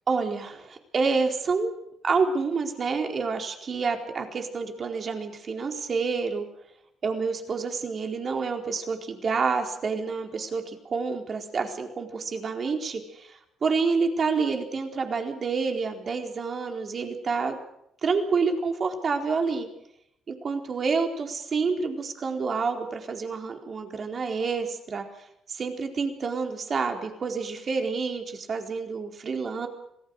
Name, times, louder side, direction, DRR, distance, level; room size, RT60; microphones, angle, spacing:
voice 1, 0.1-1.7 2.0-6.5 7.0-17.6 18.0-19.7 20.3-25.0 25.5-29.7, right 4 dB, 45° right, 4 dB, 4.2 m, -28 dB
26.0 x 18.5 x 6.6 m, 0.76 s
cardioid pair, 90°, 0 cm